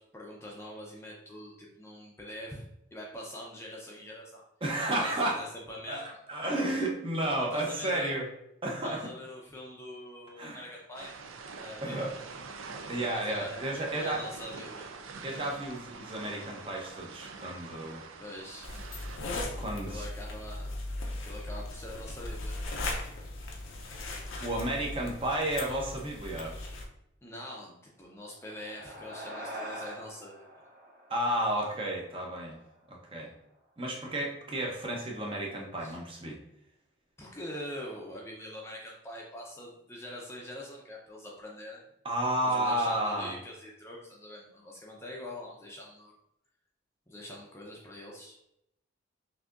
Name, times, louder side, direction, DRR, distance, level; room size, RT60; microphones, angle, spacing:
voice 1, 0.0-2.6 2.9-4.4 4.9-6.2 7.4-8.1 8.8-11.1 11.6-12.2 12.7-13.6 13.9-14.9 18.2-18.7 19.8-20.7 21.2-22.6 27.2-30.5 35.8-36.0 37.2-41.8 42.4-46.1 47.1-48.4, left 1 dB, 15° left, -3 dB, 0.5 m, -44 dB
voice 2, 4.6-5.4 5.9-6.0 6.3-8.3 8.6-9.0 10.4-10.6 11.8-12.1 12.9-14.2 15.2-18.0 19.6-20.0 24.4-26.5 31.1-32.6 32.9-33.3 33.8-36.4 42.0-43.3, right 1 dB, 25° right, -1 dB, 0.7 m, -32 dB
sound 1, 10.9-19.2, right 4 dB, 85° right, 0.5 m, -45 dB
sound 2, 18.6-26.9, left 2 dB, 85° left, 0.7 m, -38 dB
sound 3, 28.2-32.9, equal, 50° right, 1.3 m, -45 dB
5.9 x 2.7 x 2.5 m, 0.80 s
head